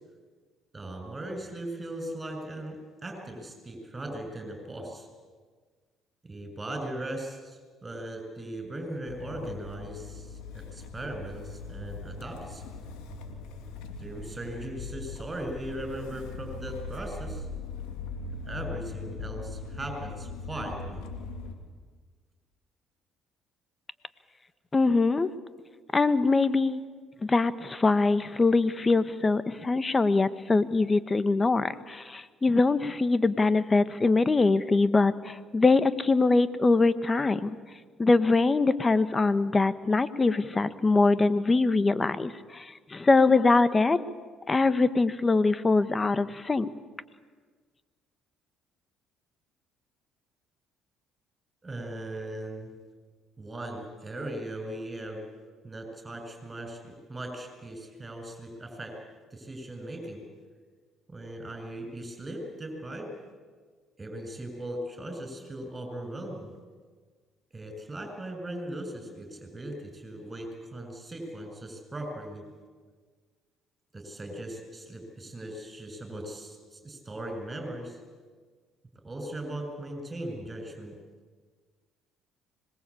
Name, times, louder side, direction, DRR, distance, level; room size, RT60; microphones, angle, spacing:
voice 1, 0.7-5.1 6.2-12.6 14.0-17.5 18.5-21.0 51.6-52.7 53.4-55.3 55.6-59.0 59.3-60.2 61.1-63.1 64.0-66.5 67.5-72.4 73.9-78.0 79.0-80.9, right 1 dB, 25° right, 5 dB, 7.2 m, -38 dB
Motor vehicle (road) / Engine starting, 9.1-21.5, left 4 dB, 80° left, 2.8 m, -40 dB
voice 2, 24.7-25.3 25.9-26.8 27.2-37.6 38.0-44.0 44.5-46.7, left 3 dB, 25° left, 13 dB, 1.5 m, -23 dB
25.5 x 21.5 x 8.7 m, 1.5 s
supercardioid pair, 65°, 0 cm